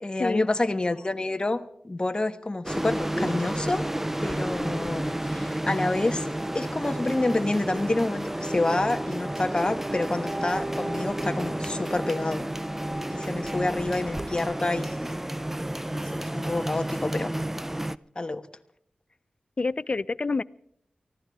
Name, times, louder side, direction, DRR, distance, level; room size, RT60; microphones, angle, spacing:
voice 1, 0.0-3.8 4.2-12.5 13.1-15.1 16.2-17.3 18.1-18.4, left 2 dB, 30° left, 7 dB, 1.2 m, -28 dB
sound 1, 2.7-18.0, right 1 dB, 10° right, 0.5 m, -31 dB
voice 2, 19.6-20.4, left 3 dB, 45° left, 17 dB, 0.5 m, -27 dB
24.0 x 15.0 x 3.6 m, 0.68 s
cardioid pair, 50°, 3 cm